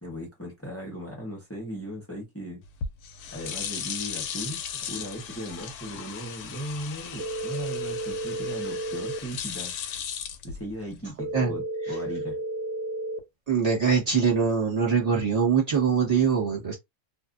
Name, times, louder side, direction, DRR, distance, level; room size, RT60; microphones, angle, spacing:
voice 1, 0.0-2.6 3.3-4.6 4.9-9.7 10.4-12.4, equal, 15° left, 0.6 m, -37 dB
sound 1, 2.6-11.1, left 7 dB, 75° left, 1.0 m, -37 dB
sound 2, 7.2-9.2 11.2-13.2, right 2 dB, 85° right, 1.3 m, -32 dB
voice 2, 13.5-16.8, right 6 dB, 25° right, 1.1 m, -23 dB
2.6 x 2.5 x 2.5 m
omnidirectional pair, 1.7 m